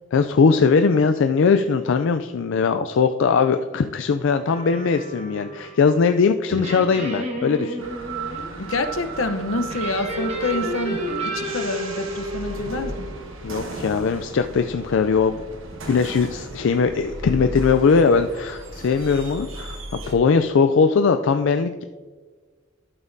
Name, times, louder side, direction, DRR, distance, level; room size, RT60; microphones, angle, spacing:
voice 1, 0.1-7.8 13.4-15.4 15.9-21.8, left 5 dB, 65° left, 7 dB, 0.4 m, -20 dB
sound 1, 4.5-5.9 6.5-8.5 9.7-13.2, equal, 30° right, 1.3 m, -32 dB
sound 2, 7.8-20.1, right 3 dB, 70° right, 1.3 m, -35 dB
voice 2, 8.6-13.1, left 2 dB, 80° left, 8 dB, 0.8 m, -27 dB
12.0 x 7.1 x 2.7 m, 1.4 s
head